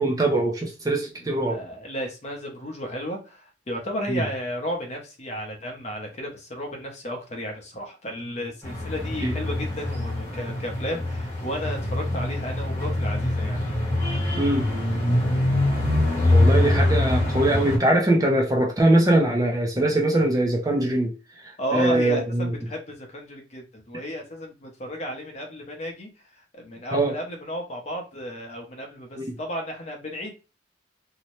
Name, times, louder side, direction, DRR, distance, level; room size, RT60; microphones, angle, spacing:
voice 1, 0.0-1.6 4.1-4.2 9.2-9.3 14.4-14.7 16.3-21.1 21.4-22.5 26.9-27.1 29.2-29.4, right 1 dB, 20° right, 1 dB, 0.4 m, -22 dB
voice 2, 1.2-13.6 16.3-16.4 21.6-30.3, equal, 35° left, 2 dB, 0.6 m, -33 dB
sound 1, 8.6-17.8, left 1 dB, 15° left, 0.9 m, -24 dB
2.7 x 2.0 x 2.9 m, 0.32 s
head